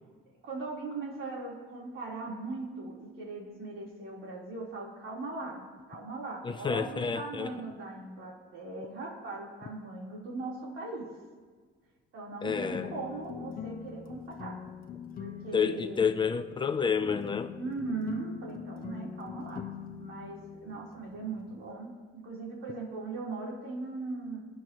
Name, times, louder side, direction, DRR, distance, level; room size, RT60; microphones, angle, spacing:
voice 1, 0.4-5.6 5.9-11.1 12.1-14.6 15.2-16.2 17.6-19.7 20.0-24.4, right 3 dB, 70° right, -3 dB, 3.9 m, -39 dB
voice 2, 6.4-7.5 12.4-12.9 15.5-17.5, left 6 dB, 25° left, 9 dB, 0.5 m, -29 dB
sound 1, 12.4-21.7, left 7 dB, 45° left, 1.1 m, -43 dB
27.5 x 10.0 x 3.1 m, 1.5 s
cardioid pair, 160°, 21 cm